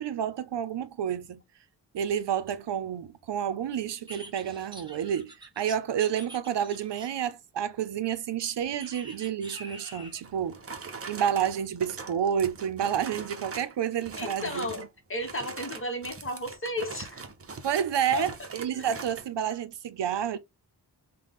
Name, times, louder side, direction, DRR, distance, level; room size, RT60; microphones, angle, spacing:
voice 1, 0.0-1.4 1.9-10.6 10.8-14.7 17.6-20.4, right 9 dB, 70° right, 0.7 m, -30 dB
sound 1, 4.1-7.3 8.8-10.3, right 1 dB, 10° right, 1.1 m, -46 dB
sound 2, 10.2-13.7 14.0-14.9 15.2-19.3, right 4 dB, 30° right, 0.8 m, -42 dB
voice 2, 14.2-17.2 18.1-18.5 18.7-18.8, left 1 dB, 30° left, 1.1 m, -34 dB
5.7 x 2.3 x 3.5 m
wide cardioid pair, 140°, 43 cm